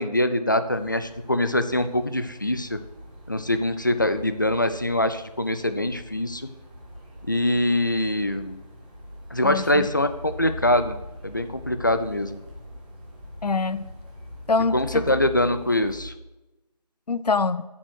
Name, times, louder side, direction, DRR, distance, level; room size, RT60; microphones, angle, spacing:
voice 1, 0.0-2.8 3.3-6.5 7.3-8.6 9.3-11.0 11.2-12.4 14.7-16.1, left 1 dB, 30° left, 10 dB, 0.5 m, -24 dB
sound 1, 0.6-16.1, left 1 dB, 15° right, 1.3 m, -42 dB
voice 2, 9.4-9.9 13.4-13.9 14.5-15.0 17.1-17.6, left 4 dB, 70° left, 14 dB, 0.7 m, -24 dB
8.8 x 7.3 x 7.9 m, 1.0 s
figure-of-eight pair, 175°, 21 cm